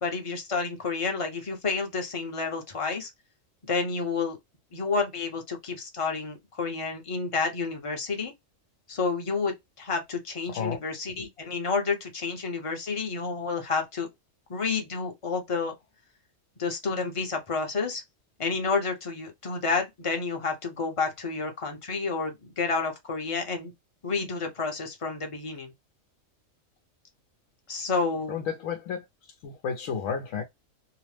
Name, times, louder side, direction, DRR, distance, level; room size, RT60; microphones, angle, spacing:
voice 1, 0.0-3.1 3.7-4.4 4.7-8.3 8.9-14.1 14.5-15.7 16.6-18.0 18.4-23.7 24.0-25.7 27.7-28.4, left 4 dB, 30° left, 0.6 m, -30 dB
voice 2, 28.3-29.0 29.4-30.4, left 6 dB, 85° left, 1.0 m, -31 dB
2.8 x 2.0 x 3.1 m
omnidirectional pair, 1.4 m